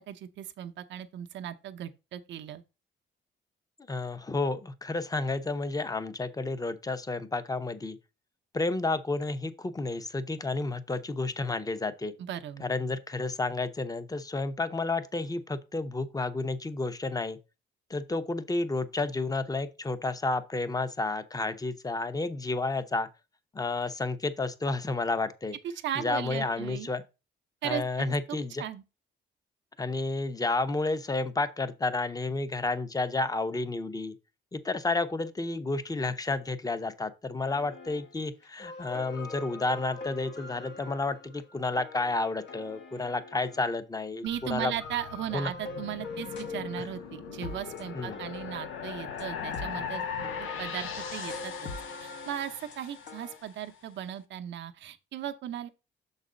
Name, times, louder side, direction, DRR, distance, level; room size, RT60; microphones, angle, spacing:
voice 1, 0.1-2.6 12.2-12.7 25.6-26.9 27.6-28.1 28.6-28.8 44.2-50.1 50.4-51.7 52.0-55.7, right 10 dB, 70° right, 0.7 m, -37 dB
voice 2, 3.9-8.0 8.5-12.1 12.6-17.4 17.9-23.1 23.5-25.5 26.0-27.0 27.6-28.6 29.8-34.1 34.5-44.7 45.3-45.5 47.9-48.2, left 3 dB, 20° left, 0.8 m, -31 dB
sound 1, 37.4-38.1 38.4-43.7 44.2-53.4, left 3 dB, 65° left, 1.2 m, -43 dB
sound 2, 44.3-53.6, left 7 dB, 85° left, 0.9 m, -40 dB
6.5 x 4.0 x 5.0 m
cardioid pair, 90°, 20 cm